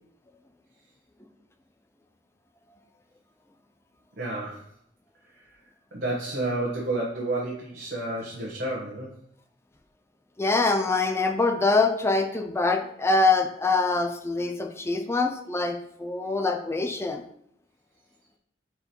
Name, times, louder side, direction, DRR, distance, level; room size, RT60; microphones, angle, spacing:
voice 1, 4.2-4.7 5.3-5.5 5.9-9.1, right 2 dB, 55° right, -5 dB, 1.3 m, -30 dB
voice 2, 10.4-17.2, left 3 dB, 15° left, 5 dB, 0.4 m, -24 dB
5.0 x 4.6 x 4.4 m, 0.69 s
head